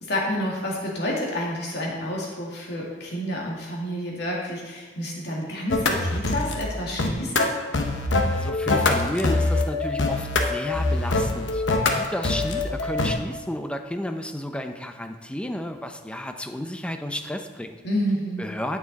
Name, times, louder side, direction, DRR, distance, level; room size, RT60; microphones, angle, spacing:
voice 1, 0.0-7.5 17.8-18.4, equal, 65° left, -3 dB, 2.2 m, -29 dB
sound 1, 5.7-6.6 7.0-13.2, left 2 dB, 85° left, 0.9 m, -24 dB
voice 2, 8.3-11.6 11.9-17.8 18.4-18.8, left 1 dB, 5° left, 6 dB, 0.6 m, -32 dB
9.0 x 7.2 x 4.1 m, 1.3 s
head